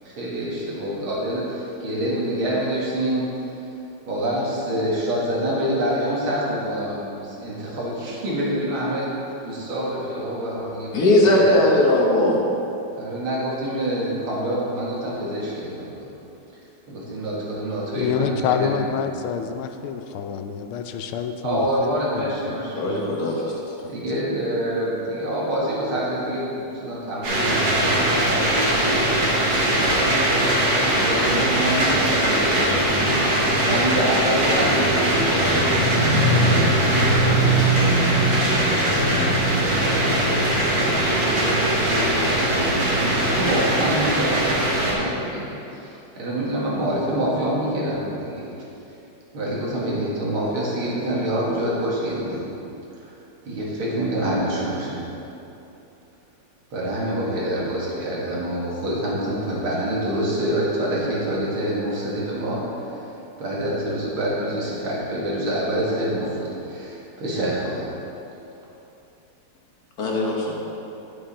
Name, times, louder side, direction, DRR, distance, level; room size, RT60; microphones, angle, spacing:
voice 1, 0.0-3.3 4.1-9.1 9.4-11.5 12.9-16.1 16.9-18.7 21.4-23.0 23.3-23.5 23.9-28.5 28.7-41.2 42.2-45.4 45.7-48.5 49.3-52.4 52.9-53.1 53.5-55.0 56.7-63.1 63.4-67.9, right 1 dB, 80° right, -6 dB, 2.7 m, -27 dB
voice 2, 10.9-12.4 22.7-23.4 70.0-70.5, left 1 dB, 55° left, -2 dB, 1.5 m, -18 dB
voice 3, 17.9-22.6 22.9-23.2 23.8-23.9, left 7 dB, 90° left, 7 dB, 1.5 m, -27 dB
sound 1, 27.2-44.9, right 1 dB, 60° right, 2.5 m, -20 dB
10.0 x 7.7 x 4.3 m, 2.9 s
omnidirectional pair, 2.3 m